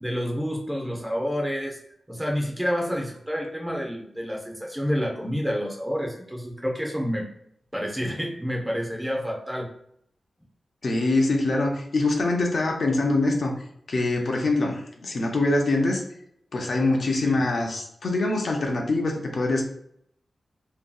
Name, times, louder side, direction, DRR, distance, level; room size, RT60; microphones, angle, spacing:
voice 1, 0.0-1.8 2.1-7.3 7.7-9.7 17.2-17.4, equal, 5° right, -1 dB, 0.5 m, -29 dB
voice 2, 10.8-13.5 13.9-16.0 16.5-19.6, left 2 dB, 55° left, 2 dB, 0.4 m, -24 dB
2.7 x 2.6 x 2.2 m, 0.70 s
wide cardioid pair, 155°, 0 cm